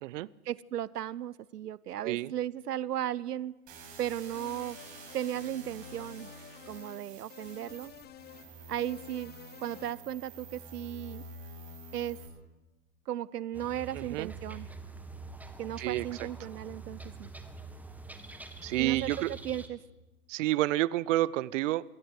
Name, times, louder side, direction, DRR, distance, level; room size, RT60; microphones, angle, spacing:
voice 1, 0.4-3.6 4.0-4.8 5.1-6.3 6.7-7.9 8.7-9.3 9.6-11.2 11.9-12.2 13.1-14.7 15.6-17.3 18.8-19.8, right 11 dB, 90° right, 22 dB, 0.7 m, -36 dB
sound 1, 3.7-12.3, right 2 dB, 40° right, 7.6 m, -48 dB
sound 2, 4.3-5.5 5.8-7.0 7.3-8.5 8.8-10.0, left 11 dB, 20° left, 1.0 m, -51 dB
sound 3, 13.5-19.7, right 3 dB, 5° right, 1.6 m, -45 dB
voice 2, 13.9-14.3 15.8-16.1 18.6-19.3 20.3-21.8, right 16 dB, 55° right, 22 dB, 0.7 m, -29 dB
23.0 x 16.0 x 8.1 m, 1.1 s
hypercardioid pair, 110°, 45 cm